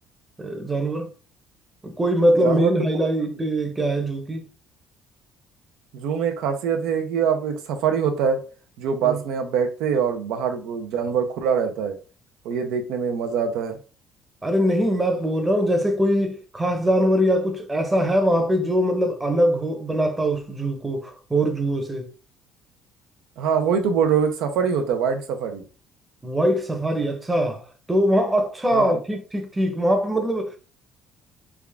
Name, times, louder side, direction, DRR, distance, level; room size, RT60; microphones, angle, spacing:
voice 1, 0.4-1.1 1.8-4.4 9.0-9.2 14.4-22.1 26.2-27.6 27.9-30.6, equal, 15° right, 0.7 m, -22 dB
voice 2, 2.4-2.7 5.9-8.4 8.8-12.0 12.4-13.8 23.4-25.6 28.7-28.9, right 7 dB, 85° right, 0.6 m, -23 dB
3.5 x 2.4 x 3.4 m
cardioid pair, 130°, 0 cm